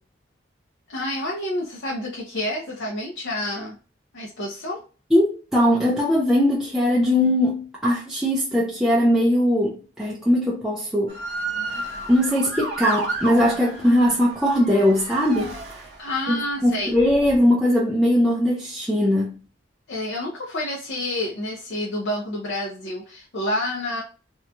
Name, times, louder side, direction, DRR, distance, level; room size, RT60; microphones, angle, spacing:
voice 1, 0.9-3.7 4.1-4.8 16.0-16.9 19.9-24.0, left 1 dB, 65° left, 0.6 m, -29 dB
voice 2, 5.1-11.2 12.1-15.6 16.3-19.3, left 1 dB, 5° right, 0.4 m, -20 dB
Motor vehicle (road) / Siren, 11.1-16.3 17.0-17.4, right 2 dB, 60° right, 0.7 m, -32 dB
2.9 x 2.2 x 2.4 m
head